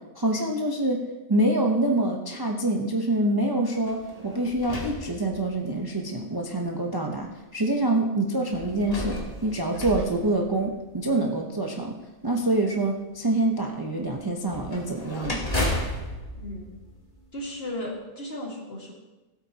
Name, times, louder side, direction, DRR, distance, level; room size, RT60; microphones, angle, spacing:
voice 1, 0.1-15.5, right 1 dB, 25° right, 1 dB, 0.6 m, -26 dB
sound 1, 3.8-5.8 6.6-6.7 8.5-11.1 14.5-17.6, left 1 dB, 25° left, 2.0 m, -33 dB
voice 2, 16.4-16.8 17.3-18.9, left 1 dB, 40° left, -2 dB, 2.1 m, -35 dB
16.5 x 8.6 x 2.9 m, 1.1 s
omnidirectional pair, 1.6 m